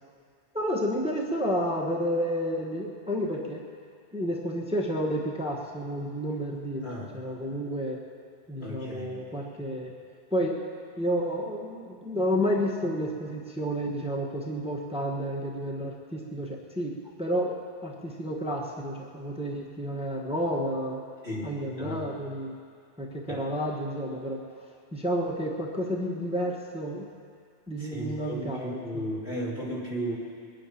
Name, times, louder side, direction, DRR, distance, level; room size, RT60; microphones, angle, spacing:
voice 1, 0.5-3.6 4.1-6.9 7.1-8.0 8.5-9.9 10.3-10.6 11.0-16.9 17.2-21.0 21.4-22.5 23.0-24.4 24.9-27.1 27.7-28.8, equal, 5° right, -2 dB, 1.2 m, -30 dB
voice 2, 6.8-7.2 8.6-9.2 21.2-21.5 21.8-22.0 23.3-23.5 27.8-30.1, equal, 65° left, -7 dB, 3.8 m, -35 dB
22.0 x 10.0 x 5.9 m, 2.2 s
omnidirectional pair, 1.1 m